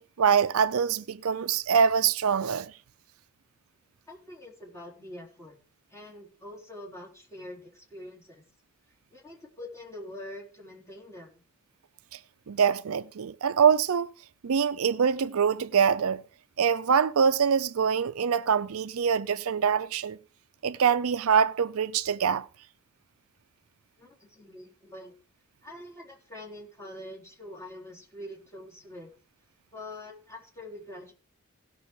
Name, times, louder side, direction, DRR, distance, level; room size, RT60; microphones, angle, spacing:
voice 1, 0.0-2.7 12.1-12.2 12.5-14.1 14.4-16.2 16.6-20.2 20.6-22.5, right 7 dB, 75° right, 0.5 m, -24 dB
voice 2, 4.1-5.6 5.9-8.4 9.1-11.5 24.0-25.2 25.6-29.1 29.7-31.1, left 1 dB, 10° left, 3.8 m, -44 dB
17.0 x 6.2 x 4.9 m
head